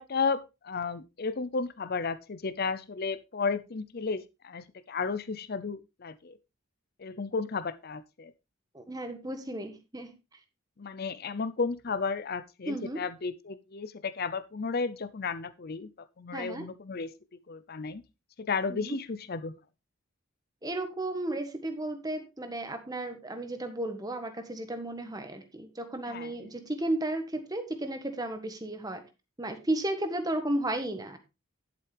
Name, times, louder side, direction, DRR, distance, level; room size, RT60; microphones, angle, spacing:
voice 1, 0.0-6.4 7.0-8.3 10.8-15.9 16.2-17.1 17.5-18.0 18.4-19.5 26.1-26.3, left 4 dB, 45° left, 14 dB, 0.6 m, -33 dB
voice 2, 8.7-10.4 12.7-13.0 16.3-16.7 18.7-18.9 20.6-29.0 29.4-31.2, right 1 dB, 20° right, 7 dB, 1.5 m, -34 dB
11.0 x 7.8 x 3.4 m, 0.26 s
head